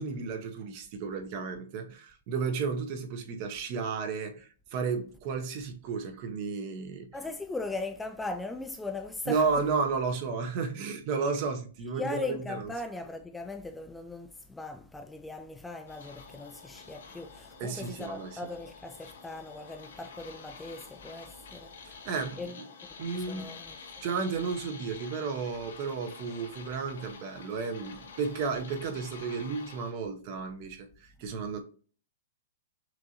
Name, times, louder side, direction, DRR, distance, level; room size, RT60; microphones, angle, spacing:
voice 1, 0.0-7.1 9.3-12.7 17.6-18.4 21.9-22.4 23.0-23.5 24.0-31.6, right 5 dB, 40° right, 0.8 m, -33 dB
voice 2, 7.1-9.6 12.0-21.9 22.4-22.6 23.1-23.8, left 3 dB, 5° left, 0.3 m, -39 dB
sound 1, 15.9-29.9, left 5 dB, 80° left, 0.9 m, -48 dB
6.0 x 2.6 x 2.8 m
hypercardioid pair, 145°, 0 cm